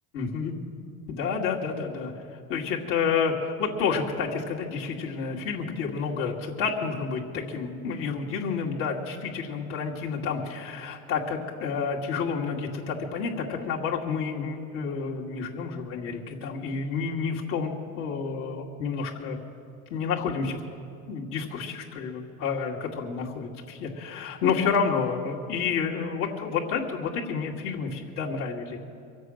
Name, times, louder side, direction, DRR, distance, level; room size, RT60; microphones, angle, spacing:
voice 1, 0.1-0.5 1.1-2.1 2.5-19.4 19.9-20.6 21.1-28.8, left 5 dB, 70° left, -3 dB, 2.6 m, -29 dB
23.5 x 8.1 x 6.5 m, 2.6 s
supercardioid pair, 95°, 43 cm